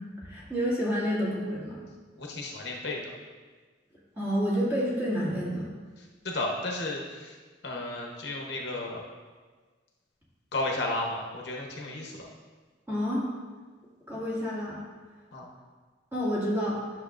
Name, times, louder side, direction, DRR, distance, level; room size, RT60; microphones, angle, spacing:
voice 1, 0.2-1.8 4.2-5.7 12.9-13.3 14.1-14.8 16.1-16.8, equal, 15° right, -8 dB, 2.0 m, -29 dB
voice 2, 2.2-3.0 6.2-7.3 7.6-9.0 10.5-12.2 15.3-15.5, left 2 dB, 60° left, -1 dB, 0.9 m, -33 dB
10.5 x 6.4 x 2.5 m, 1.4 s
head